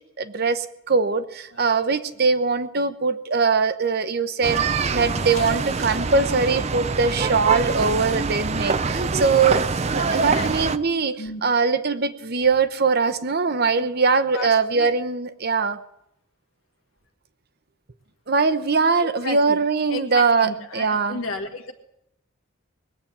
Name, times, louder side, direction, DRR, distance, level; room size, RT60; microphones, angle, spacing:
voice 1, 0.2-15.8 18.3-21.2, right 4 dB, 50° right, 11 dB, 0.9 m, -22 dB
sound 1, 4.4-10.8, right 4 dB, 30° right, 0.5 m, -25 dB
voice 2, 10.1-10.5 11.2-11.4 13.8-13.9 14.3-14.9 19.0-19.6 19.9-21.7, left 3 dB, 80° left, 5 dB, 1.7 m, -33 dB
20.5 x 8.4 x 7.2 m, 0.82 s
head